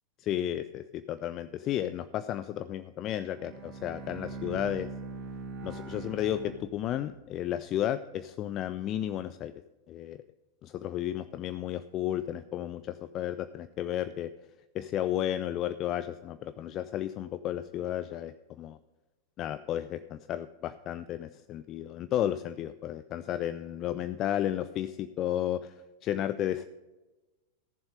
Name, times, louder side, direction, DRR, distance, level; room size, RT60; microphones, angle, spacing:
voice 1, 0.3-4.9 5.6-9.5 9.9-10.2 10.6-14.3 14.7-18.8 19.4-25.7 26.0-26.7, left 11 dB, 35° left, 13 dB, 0.4 m, -33 dB
Bowed string instrument, 3.2-7.3, right 3 dB, 45° right, 3.0 m, -42 dB
15.0 x 7.2 x 5.1 m, 1.1 s
figure-of-eight pair, 90°, 0 cm